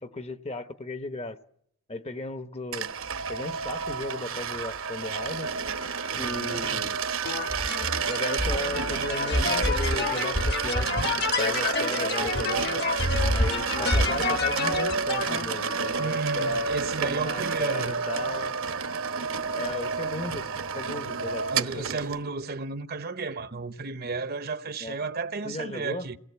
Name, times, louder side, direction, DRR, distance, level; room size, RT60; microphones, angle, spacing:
voice 1, 0.0-1.4 1.9-2.9 3.3-5.5 6.2-7.0 8.0-10.9 11.2-12.7 13.3-16.7 17.0-18.6 19.5-20.5 20.8-21.9 24.8-25.0 25.4-26.1, left 2 dB, 30° left, 0.9 m, -36 dB
sound 1, 2.7-22.2, right 5 dB, 65° right, 1.1 m, -30 dB
voice 2, 6.1-6.9 16.0-17.9 21.5-26.2, right 4 dB, 45° right, 0.9 m, -33 dB
sound 2, 7.2-15.4, left 2 dB, 50° left, 1.3 m, -28 dB
28.0 x 18.5 x 8.2 m
head